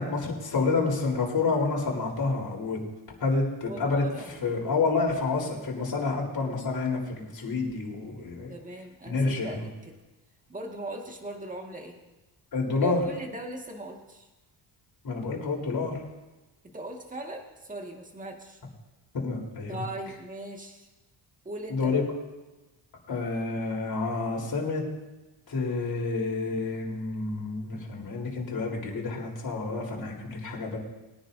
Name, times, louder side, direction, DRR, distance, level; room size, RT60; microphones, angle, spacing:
voice 1, 0.0-2.8 3.2-4.0 4.4-8.5 9.1-9.6 12.5-13.0 15.0-16.0 19.1-19.8 21.7-22.0 23.1-24.8 25.5-30.8, left 3 dB, 50° left, -2 dB, 3.9 m, -29 dB
voice 2, 3.7-4.6 8.5-10.0 10.5-12.0 12.8-14.3 16.7-18.6 19.7-20.9 21.5-22.0, right 1 dB, 15° right, 1 dB, 1.8 m, -39 dB
22.0 x 10.0 x 2.7 m, 1.1 s
cardioid pair, 120°, 47 cm